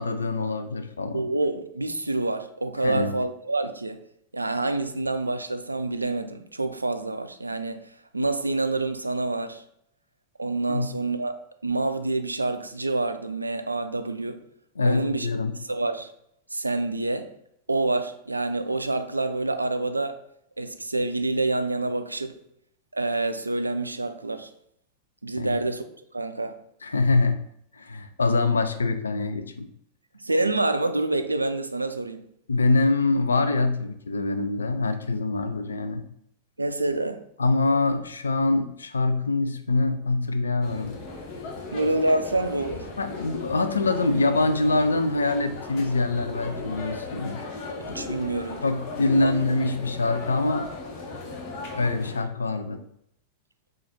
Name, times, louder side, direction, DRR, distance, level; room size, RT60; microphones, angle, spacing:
voice 1, 0.0-1.3 2.8-3.1 10.7-10.9 14.8-15.6 25.4-25.6 26.8-27.4 27.7-29.7 32.5-36.0 37.4-41.0 43.0-47.4 48.6-50.7 51.2-51.3 51.7-52.8, left 3 dB, 75° left, 0.4 m, -24 dB
voice 2, 1.1-4.0 4.3-7.8 8.1-9.6 10.4-11.4 11.6-14.4 14.8-15.3 15.6-16.1 16.5-17.3 17.7-20.2 20.6-22.3 22.9-24.5 25.2-25.9 26.1-26.6 30.2-32.2 36.6-37.2 41.7-42.9 47.9-48.6 49.2-49.3, right 2 dB, 80° right, 0.3 m, -27 dB
sound 1, 40.6-52.2, left 3 dB, 45° left, 0.8 m, -37 dB
3.9 x 2.5 x 4.3 m
figure-of-eight pair, 90°, 0 cm